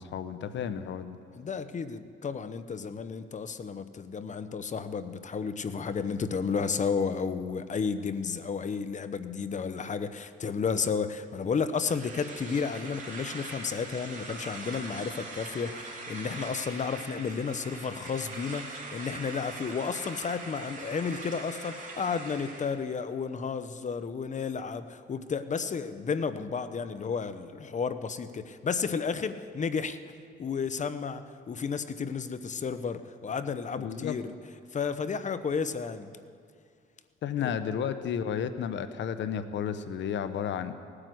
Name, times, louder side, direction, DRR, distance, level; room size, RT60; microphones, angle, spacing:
voice 1, 0.0-1.2 33.8-34.2 37.2-40.7, left 8 dB, 65° left, 11 dB, 0.9 m, -32 dB
voice 2, 1.4-30.0 30.4-34.3 34.7-36.1 37.4-37.5, left 5 dB, 40° left, 11 dB, 0.9 m, -32 dB
sound 1, 11.8-22.7, right 3 dB, 40° right, 3.4 m, -42 dB
18.0 x 9.9 x 7.8 m, 2.2 s
cardioid pair, 90°, 20 cm